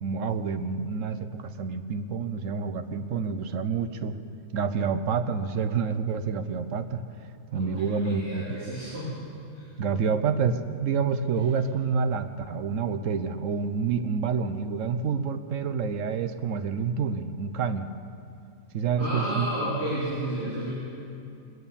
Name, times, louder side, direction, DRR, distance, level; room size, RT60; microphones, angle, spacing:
voice 1, 0.0-4.2 4.5-7.0 7.5-8.7 9.8-17.9 18.7-19.5, right 5 dB, 65° right, 10 dB, 1.0 m, -28 dB
voice 2, 7.6-9.1 9.5-9.6 19.0-20.7, right 1 dB, 45° right, -11 dB, 3.9 m, -31 dB
21.5 x 9.5 x 7.0 m, 2.6 s
omnidirectional pair, 1.6 m